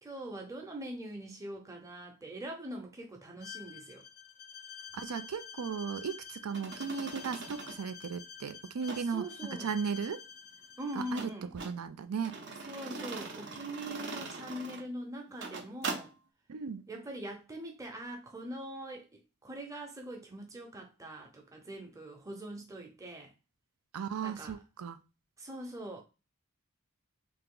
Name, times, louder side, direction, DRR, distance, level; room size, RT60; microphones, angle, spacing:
voice 1, 0.0-4.0 9.1-9.7 10.8-11.5 12.6-16.1 16.9-23.3 24.2-24.6 25.4-26.0, right 1 dB, 15° right, 0.8 m, -42 dB
Bowed string instrument, 3.4-11.3, left 7 dB, 45° left, 0.4 m, -49 dB
voice 2, 4.9-10.2 11.0-11.3 11.6-12.4 16.5-16.8 23.9-25.0, right 6 dB, 90° right, 0.4 m, -36 dB
sound 1, 6.5-7.8 8.8-9.0 11.2-11.8 12.2-14.9 15.3-16.1, right 3 dB, 50° right, 0.7 m, -41 dB
3.4 x 2.8 x 3.8 m
head